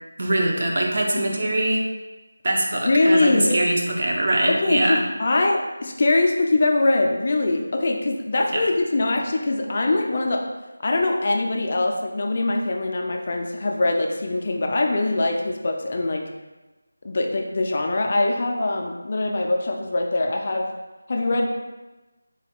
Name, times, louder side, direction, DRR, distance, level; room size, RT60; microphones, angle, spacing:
voice 1, 0.2-1.9 2.4-5.0 8.5-8.6, right 1 dB, 50° right, 0 dB, 0.6 m, -22 dB
voice 2, 2.8-3.6 4.5-10.4 10.8-16.2 17.0-20.7 21.1-21.5, left 2 dB, 40° left, 2 dB, 0.4 m, -22 dB
3.9 x 2.2 x 3.5 m, 1.1 s
figure-of-eight pair, 170°, 0 cm